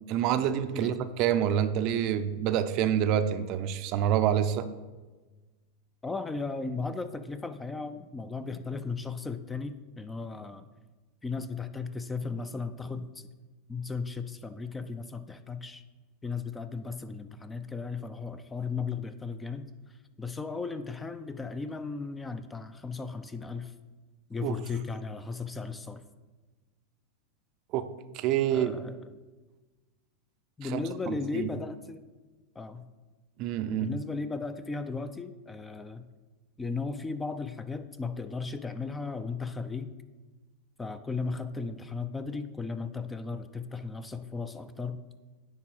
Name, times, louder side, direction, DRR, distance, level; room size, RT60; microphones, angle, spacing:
voice 1, 0.1-4.7 24.4-24.6 27.7-28.8 30.6-30.8 31.1-31.5 33.4-33.9, right 10 dB, 50° right, 11 dB, 0.5 m, -27 dB
voice 2, 6.0-10.7 11.2-13.3 13.7-15.8 16.2-19.7 20.2-23.7 24.3-26.0 28.5-29.1 30.6-32.0 32.6-32.9 33.7-36.1 36.6-39.9 40.8-45.0, left 4 dB, 10° left, 11 dB, 0.4 m, -36 dB
9.8 x 3.6 x 4.8 m, 1.3 s
hypercardioid pair, 120°, 0 cm